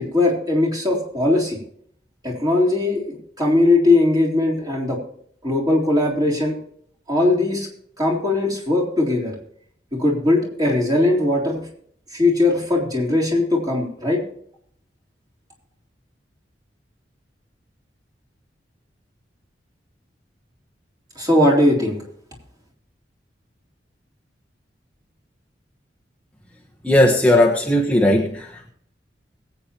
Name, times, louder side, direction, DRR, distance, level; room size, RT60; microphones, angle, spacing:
voice 1, 0.0-1.6 2.2-5.0 5.4-6.6 7.1-7.7 8.0-9.3 9.9-11.6 12.1-14.2 21.2-22.0, left 2 dB, 20° right, -3 dB, 3.6 m, -19 dB
voice 2, 26.8-28.7, left 1 dB, 5° left, -2 dB, 1.2 m, -17 dB
21.5 x 8.6 x 3.0 m, 0.63 s
head